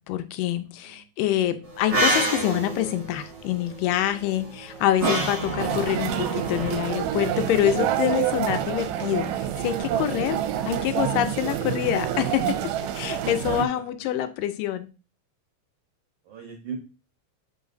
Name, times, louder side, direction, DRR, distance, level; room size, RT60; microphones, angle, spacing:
voice 1, 0.1-10.4 10.7-12.6 12.9-14.9, left 12 dB, 80° left, 10 dB, 2.3 m, -26 dB
sound 1, 1.7-6.8, right 2 dB, 30° right, 1.4 m, -28 dB
sound 2, 5.6-13.6, right 11 dB, 80° right, 2.1 m, -27 dB
voice 2, 13.4-14.2 16.2-16.8, right 6 dB, 65° right, 1 dB, 1.6 m, -37 dB
7.2 x 4.0 x 3.8 m, 0.33 s
omnidirectional pair, 3.9 m